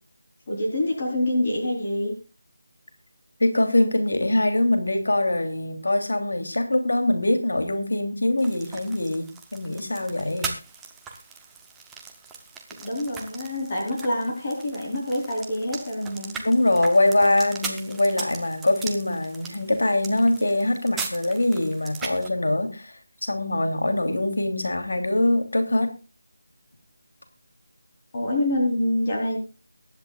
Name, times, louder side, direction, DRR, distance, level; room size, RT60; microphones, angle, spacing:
voice 1, 0.5-2.1 12.7-16.3 28.1-29.4, left 1 dB, 20° left, -1 dB, 3.8 m, -26 dB
voice 2, 3.4-10.5 16.4-25.9, left 1 dB, 70° left, 8 dB, 3.0 m, -23 dB
sound 1, 8.4-22.3, right 5 dB, 5° right, 0.7 m, -39 dB
22.5 x 10.5 x 2.4 m, 0.31 s
figure-of-eight pair, 180°, 0 cm